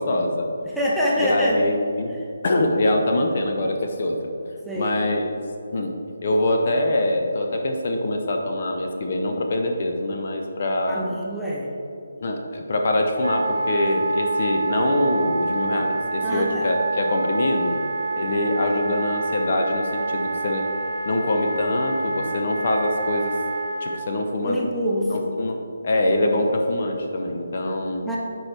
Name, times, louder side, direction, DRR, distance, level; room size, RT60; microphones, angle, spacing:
voice 1, 0.0-0.5 1.2-2.2 2.4-4.2 4.8-5.3 5.7-6.0 6.2-11.2 12.2-17.7 18.2-20.6 21.1-23.4 23.8-24.6 25.1-25.6 25.8-28.0, left 1 dB, 45° left, 3 dB, 0.7 m, -24 dB
voice 2, 0.7-1.6 4.6-4.9 10.9-11.7 16.2-16.7 22.4-22.5 24.4-25.3 28.0-28.2, equal, ahead, -7 dB, 0.7 m, -25 dB
Wind instrument woodwind instrument, 13.2-24.0, right 3 dB, 70° right, 0.5 m, -27 dB
9.5 x 4.7 x 3.3 m, 2.7 s
figure-of-eight pair, 145°, 0 cm